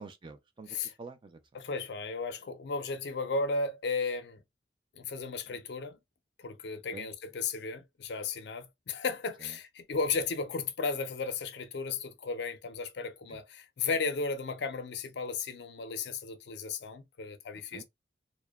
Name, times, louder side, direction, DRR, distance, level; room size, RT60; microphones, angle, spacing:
voice 1, 0.0-1.4 5.5-5.6 6.9-7.1 9.4-9.5 13.3-13.4 17.7-17.8, right 4 dB, 25° right, 0.3 m, -47 dB
voice 2, 1.5-4.4 4.9-6.0 6.4-17.8, left 4 dB, 65° left, 0.5 m, -35 dB
2.8 x 2.1 x 2.2 m
head